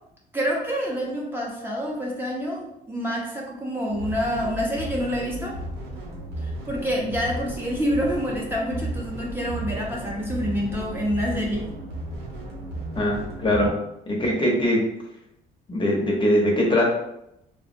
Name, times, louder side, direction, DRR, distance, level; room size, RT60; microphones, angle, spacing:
voice 1, 0.3-5.6 6.4-11.7, equal, 15° right, -4 dB, 0.7 m, -27 dB
sound 1, 3.9-13.7, right 1 dB, 70° right, 0.9 m, -34 dB
voice 2, 12.9-13.7 14.1-14.8 15.7-16.8, left 1 dB, 30° left, -2 dB, 0.7 m, -21 dB
3.3 x 2.0 x 2.6 m, 0.83 s
cardioid pair, 110°, 17 cm